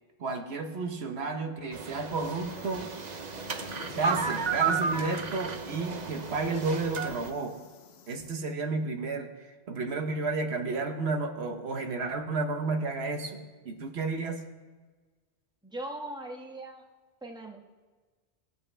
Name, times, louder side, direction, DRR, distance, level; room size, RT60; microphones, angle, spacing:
voice 1, 0.2-2.9 3.9-7.6 8.1-14.4, right 3 dB, 75° right, 4 dB, 1.2 m, -32 dB
sound 1, 1.7-7.3, right 5 dB, 45° right, 0.8 m, -33 dB
sound 2, 2.5-8.4, left 7 dB, 70° left, 0.9 m, -49 dB
voice 2, 15.6-16.8 17.2-17.6, right 1 dB, 5° right, 0 dB, 1.2 m, -39 dB
19.5 x 8.1 x 3.3 m, 1.4 s
omnidirectional pair, 1.1 m